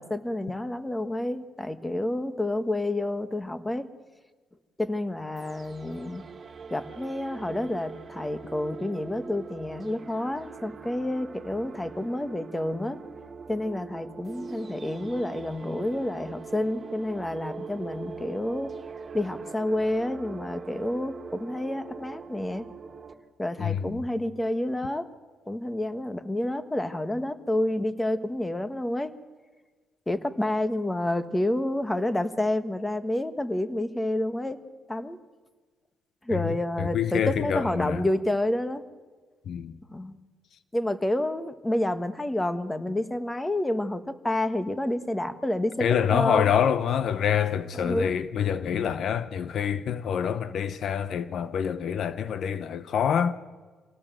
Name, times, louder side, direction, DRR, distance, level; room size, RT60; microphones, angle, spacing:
voice 1, 0.0-3.9 4.8-6.2 6.7-13.0 13.5-18.7 19.1-22.7 23.4-25.1 25.5-29.1 30.1-34.6 34.9-35.2 36.2-38.8 39.9-40.1 40.7-45.9 46.1-46.5 47.8-48.1, left 1 dB, 10° left, 1.5 m, -29 dB
sound 1, 5.4-23.1, right 5 dB, 40° right, 2.3 m, -42 dB
voice 2, 23.6-24.0 36.3-38.1 39.5-39.8 45.8-53.3, left 8 dB, 65° left, 0.8 m, -26 dB
26.5 x 18.0 x 7.7 m
cardioid pair, 90°, 0 cm